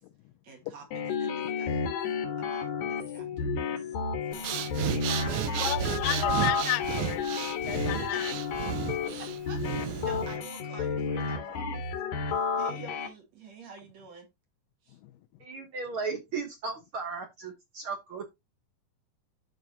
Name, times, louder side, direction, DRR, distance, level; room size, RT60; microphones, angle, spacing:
voice 1, 0.4-2.0 2.4-3.8 4.3-5.8 7.7-8.5 9.5-11.8 12.3-14.3 14.8-15.0, right 4 dB, 50° right, 3.0 m, -48 dB
sound 1, 0.9-13.1, left 5 dB, 65° left, 2.5 m, -31 dB
Breathing, 4.3-10.4, right 12 dB, 85° right, 1.6 m, -34 dB
voice 2, 5.6-7.4 7.7-8.3, left 17 dB, 80° left, 2.2 m, -33 dB
voice 3, 15.4-18.2, right 4 dB, 70° right, 1.2 m, -36 dB
13.0 x 4.8 x 2.8 m
omnidirectional pair, 4.1 m